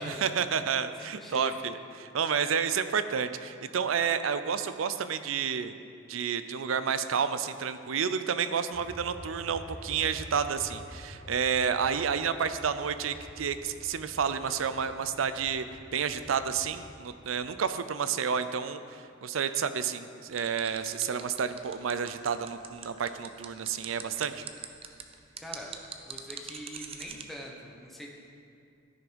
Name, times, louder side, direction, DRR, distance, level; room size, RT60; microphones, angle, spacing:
voice 1, 0.0-5.7 6.1-15.6 15.9-24.4, right 7 dB, 90° right, 12 dB, 0.5 m, -30 dB
voice 2, 1.0-1.6 25.4-25.7 26.0-28.1, equal, ahead, -1 dB, 1.1 m, -43 dB
sound 1, 8.7-17.5, equal, 55° left, 2.0 m, -48 dB
sound 2, 20.3-27.2, right 7 dB, 30° right, 0.6 m, -42 dB
13.5 x 5.9 x 5.2 m, 2.4 s
head